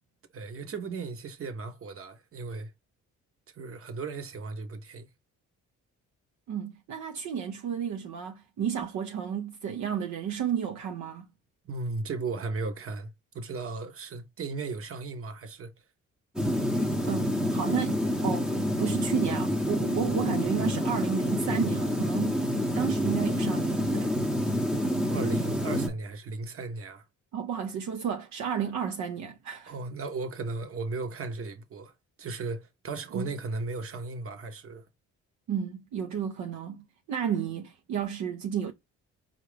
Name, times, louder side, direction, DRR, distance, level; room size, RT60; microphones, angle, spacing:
voice 1, 0.3-2.7 3.5-5.1 11.6-13.1 13.3-15.7 25.1-27.1 29.7-31.9 32.2-34.9, right 3 dB, 50° right, 1.0 m, -36 dB
voice 2, 6.5-11.3 17.0-22.4 22.8-24.1 27.3-29.7 33.1-33.3 35.5-38.7, right 8 dB, 70° right, 0.6 m, -32 dB
sound 1, 16.4-25.9, equal, 5° right, 0.7 m, -28 dB
4.6 x 2.5 x 3.2 m
cardioid pair, 90°, 30 cm